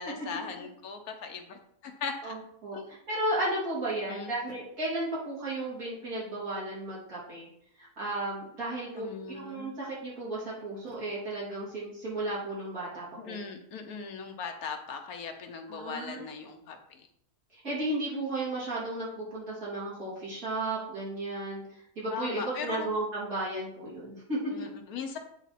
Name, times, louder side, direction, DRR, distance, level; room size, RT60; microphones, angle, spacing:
voice 1, 0.0-2.4 2.7-2.9 4.1-4.3 9.0-9.7 13.2-17.1 22.1-22.9 24.5-25.2, left 5 dB, 70° left, 5 dB, 1.4 m, -39 dB
voice 2, 2.2-7.5 7.8-13.4 15.7-16.3 17.5-21.6 22.0-24.7, right 1 dB, 65° right, -8 dB, 3.7 m, -34 dB
8.7 x 4.0 x 4.2 m, 0.71 s
omnidirectional pair, 1.7 m